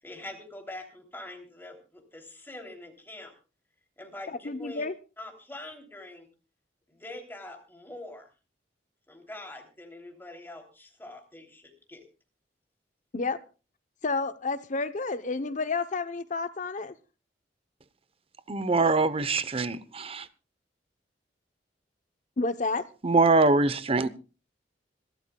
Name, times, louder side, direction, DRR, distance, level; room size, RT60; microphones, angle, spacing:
voice 1, 0.0-3.3 4.0-4.9 5.2-6.3 6.9-8.3 9.1-12.0, left 2 dB, 10° left, 3.2 m, -44 dB
voice 2, 4.3-4.9 13.1-13.4 14.0-16.9 22.4-22.8, left 3 dB, 45° left, 0.8 m, -30 dB
voice 3, 18.5-20.3 23.0-24.1, right 3 dB, 35° right, 0.9 m, -23 dB
26.0 x 12.5 x 2.3 m
head